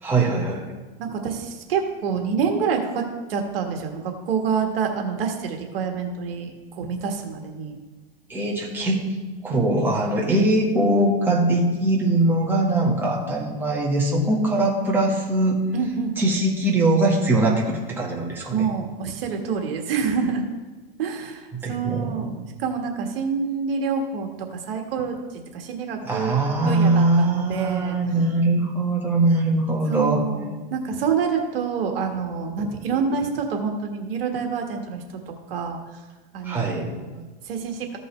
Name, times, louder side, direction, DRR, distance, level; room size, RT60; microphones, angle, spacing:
voice 1, 0.0-0.6 8.3-9.0 9.4-15.6 16.2-18.7 21.6-22.2 26.0-30.2 36.4-36.9, right 2 dB, 5° right, -4 dB, 1.5 m, -21 dB
voice 2, 1.0-3.0 3.3-7.8 15.7-16.4 18.5-20.4 21.0-25.2 25.5-28.0 29.9-35.0 35.5-35.8 36.3-38.0, right 6 dB, 70° right, 3 dB, 1.5 m, -27 dB
15.0 x 5.4 x 3.2 m, 1.3 s
supercardioid pair, 145°, 30 cm